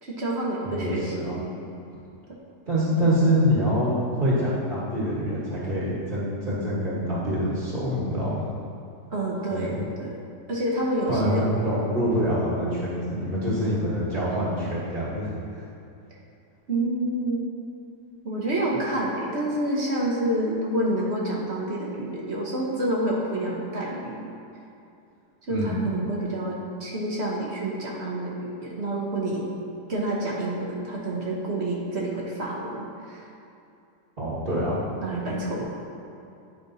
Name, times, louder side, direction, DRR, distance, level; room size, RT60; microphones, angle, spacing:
voice 1, 0.0-1.6 9.1-10.2 10.5-11.4 16.7-17.5 18.2-24.2 25.5-29.5 29.9-33.3 35.0-35.6, right 1 dB, 50° right, -4 dB, 1.0 m, -28 dB
voice 2, 0.6-1.4 2.7-8.5 9.5-9.7 11.1-15.6 25.5-25.7 34.2-34.8 35.2-35.6, equal, 30° right, -9 dB, 1.3 m, -25 dB
10.0 x 5.1 x 2.6 m, 2.6 s
omnidirectional pair, 1.8 m